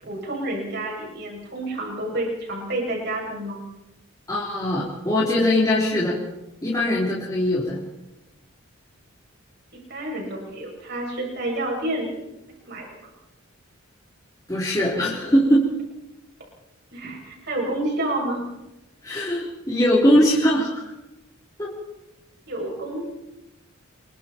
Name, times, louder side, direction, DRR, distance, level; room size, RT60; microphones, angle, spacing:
voice 1, 0.0-3.6 9.9-13.1 16.9-18.4 22.5-23.1, right 1 dB, 50° right, -1 dB, 7.9 m, -29 dB
voice 2, 4.3-6.2 6.6-7.8 14.5-15.6 19.0-20.9 21.6-21.7, equal, 15° left, -5 dB, 3.7 m, -21 dB
29.5 x 24.0 x 4.6 m, 0.98 s
head